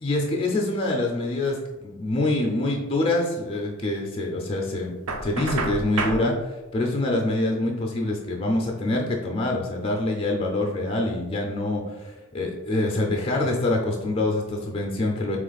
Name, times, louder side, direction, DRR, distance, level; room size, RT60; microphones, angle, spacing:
voice 1, 0.0-4.9 5.2-15.4, left 2 dB, 25° left, 1 dB, 0.4 m, -25 dB
Knock, 5.1-6.2, right 3 dB, 85° right, 0.7 m, -28 dB
3.7 x 3.1 x 4.0 m, 1.2 s
head